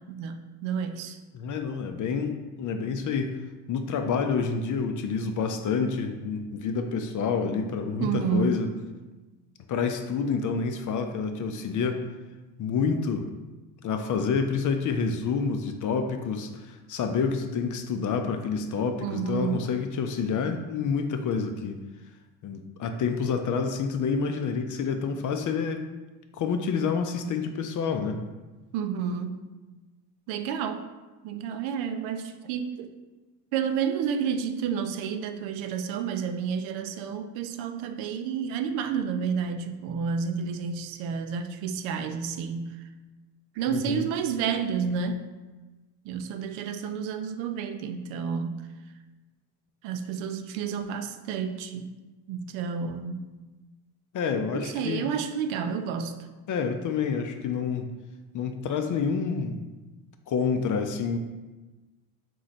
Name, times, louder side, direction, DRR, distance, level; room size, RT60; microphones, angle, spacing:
voice 1, 0.1-1.2 8.0-8.5 19.0-19.6 28.7-29.4 30.3-30.8 31.2-32.9 33.5-42.8 43.6-45.3 46.0-48.7 49.8-51.9 52.3-53.3 54.5-56.2, right 6 dB, 70° right, 8 dB, 0.6 m, -30 dB
voice 2, 1.3-3.4 3.7-8.7 9.7-12.1 12.6-13.3 13.8-21.8 22.4-25.9 26.3-28.2 43.7-44.1 54.1-55.1 56.5-57.9 58.3-59.6 60.3-61.2, left 5 dB, 40° left, 6 dB, 0.5 m, -28 dB
3.8 x 3.1 x 4.1 m, 1.2 s
supercardioid pair, 80°, 49 cm